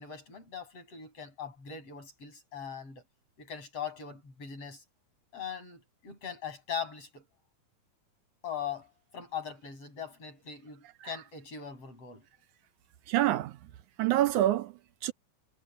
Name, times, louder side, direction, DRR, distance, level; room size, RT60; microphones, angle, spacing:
voice 1, 0.0-3.0 3.4-4.8 5.3-7.2 8.4-12.3, left 7 dB, 50° left, 7.6 m, -40 dB
voice 2, 13.1-13.7 14.0-15.1, right 14 dB, 80° right, 2.2 m, -27 dB
omnidirectional pair, 3.6 m